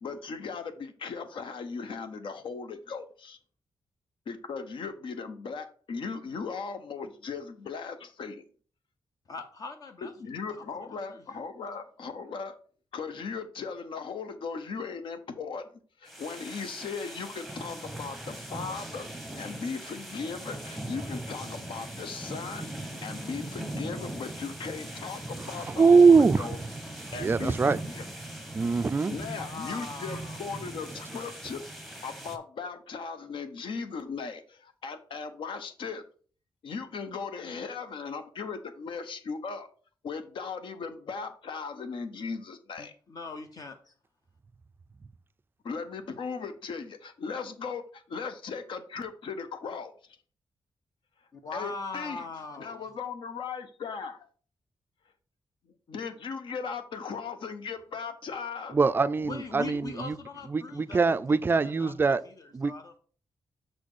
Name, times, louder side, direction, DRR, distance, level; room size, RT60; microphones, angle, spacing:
voice 1, 0.0-3.4 4.3-8.4 10.0-12.6 12.9-15.6 16.0-26.6 27.1-28.0 29.1-31.6 32.0-36.0 36.6-39.7 40.0-42.9 45.6-49.9 51.5-52.2 52.6-54.3 55.9-58.8, left 5 dB, 75° left, 0.9 m, -38 dB
voice 2, 9.3-10.1 10.5-11.3 29.3-30.4 42.8-43.9 51.3-52.8 59.2-63.0, left 4 dB, 45° left, 0.6 m, -41 dB
sound 1, 16.1-32.4, right 1 dB, ahead, 0.9 m, -40 dB
voice 3, 25.7-26.6 27.2-27.8 28.5-29.2 58.7-60.2 60.5-62.2 62.5-62.7, right 4 dB, 25° right, 0.3 m, -22 dB
6.3 x 4.2 x 4.9 m
wide cardioid pair, 160°, 9 cm